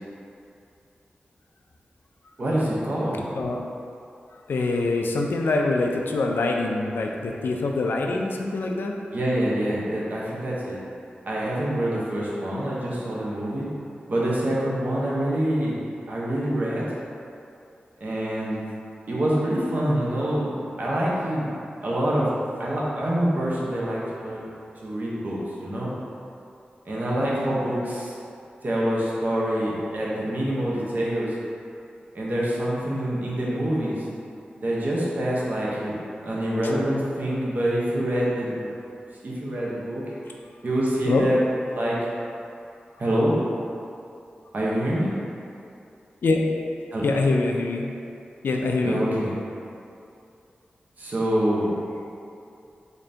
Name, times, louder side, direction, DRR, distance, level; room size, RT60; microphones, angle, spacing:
voice 1, 2.4-3.2 9.1-10.8 11.2-13.7 14.1-15.8 16.1-16.9 18.0-18.6 19.1-21.5 21.8-24.5 24.8-25.9 26.8-28.1 28.6-31.4 32.1-34.0 34.6-35.9 36.2-38.6 39.2-40.0 40.6-41.4 41.8-42.0 43.0-43.4 44.5-45.1 46.9-47.1 48.8-49.3 51.0-51.7, right 1 dB, 55° right, -6 dB, 0.7 m, -26 dB
voice 2, 4.5-8.9 27.2-27.6 41.1-41.3 46.2-46.5 47.0-47.9 48.4-49.0, left 3 dB, 85° left, 1 dB, 0.4 m, -24 dB
3.8 x 2.6 x 3.3 m, 2.6 s
wide cardioid pair, 110°, 3 cm